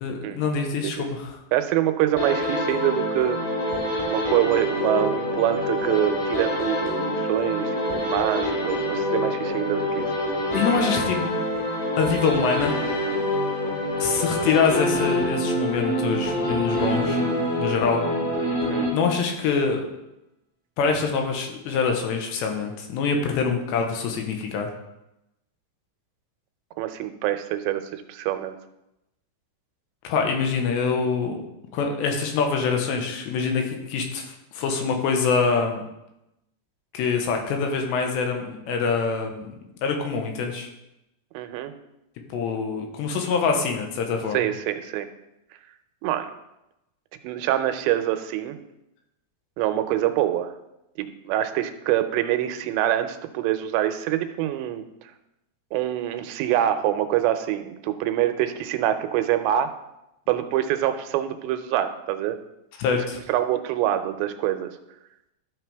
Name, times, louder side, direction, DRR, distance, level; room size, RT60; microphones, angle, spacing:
voice 1, 0.0-1.4 10.5-11.2 12.0-12.8 14.0-17.2 17.6-18.0 18.9-19.8 20.8-24.7 30.0-31.4 31.7-35.8 36.9-39.5 39.8-40.7 42.3-44.4 62.8-63.2, left 5 dB, 85° left, 3 dB, 3.2 m, -25 dB
voice 2, 1.5-3.4 4.1-10.1 18.7-18.9 26.8-28.5 41.3-41.7 44.3-45.1 46.0-46.3 47.2-48.6 49.6-50.5 51.0-54.8 55.7-59.7 60.3-62.4 63.3-64.7, right 12 dB, 85° right, 9 dB, 2.9 m, -25 dB
sound 1, 2.2-19.4, left 1 dB, 60° left, 4.1 m, -26 dB
12.5 x 6.1 x 3.4 m, 0.89 s
omnidirectional pair, 5.0 m